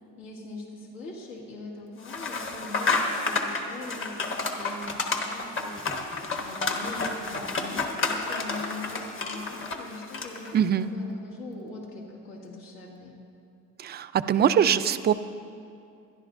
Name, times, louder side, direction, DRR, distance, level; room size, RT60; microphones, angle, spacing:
voice 1, 0.2-13.2, left 2 dB, 80° left, -2 dB, 2.2 m, -41 dB
sound 1, 2.0-10.5, left 3 dB, 40° left, 1.3 m, -30 dB
voice 2, 10.5-10.9 13.8-15.1, right 9 dB, 30° right, 13 dB, 0.4 m, -22 dB
25.0 x 11.0 x 2.6 m, 2.5 s
cardioid pair, 120°, 33 cm